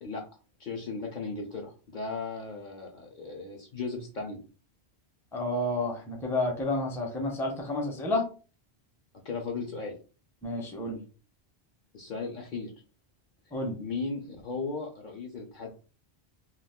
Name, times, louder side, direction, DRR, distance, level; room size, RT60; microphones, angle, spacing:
voice 1, 0.6-4.4 9.2-10.0 11.9-12.7 13.8-15.7, left 4 dB, 55° left, 1 dB, 0.6 m, -36 dB
voice 2, 5.3-8.2 10.4-11.0 13.5-13.8, left 1 dB, 5° left, 0 dB, 0.5 m, -30 dB
2.3 x 2.3 x 3.5 m, 0.36 s
omnidirectional pair, 1.1 m